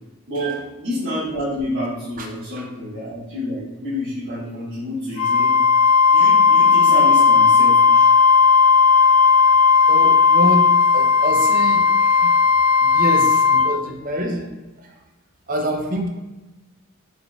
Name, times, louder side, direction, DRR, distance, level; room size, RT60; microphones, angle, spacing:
voice 1, 0.3-5.5 6.1-8.1, left 1 dB, 60° right, -13 dB, 1.3 m, -28 dB
Wind instrument woodwind instrument, 5.2-13.7, left 5 dB, 80° left, 0.5 m, -15 dB
voice 2, 9.9-12.4 12.8-14.5 14.8-15.0 15.5-16.1, right 1 dB, 40° right, 2 dB, 0.5 m, -26 dB
3.9 x 3.3 x 2.2 m, 1.1 s
head